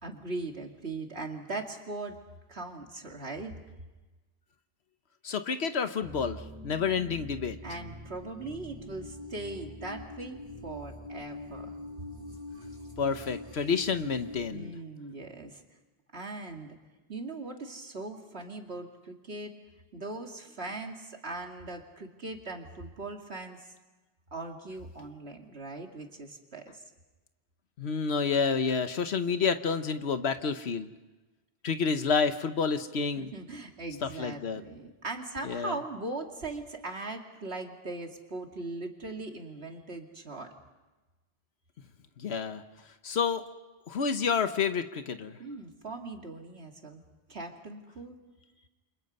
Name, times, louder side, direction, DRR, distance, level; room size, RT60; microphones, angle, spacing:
voice 1, 0.0-2.2 2.5-3.5 7.6-11.8 14.5-15.6 16.1-16.8 17.1-19.5 19.9-23.7 24.3-26.8 33.2-40.5 45.4-47.0 47.3-48.2, right 2 dB, 80° right, 2 dB, 2.8 m, -40 dB
voice 2, 5.2-7.6 13.0-14.7 27.8-30.9 31.6-33.3 34.0-34.6 35.4-35.8 42.2-43.4 43.9-45.4, left 5 dB, 85° left, 9 dB, 1.3 m, -29 dB
sound 1, 6.0-14.5, left 1 dB, 30° right, 6.0 m, -44 dB
29.0 x 26.0 x 5.4 m, 1.2 s
omnidirectional pair, 1.1 m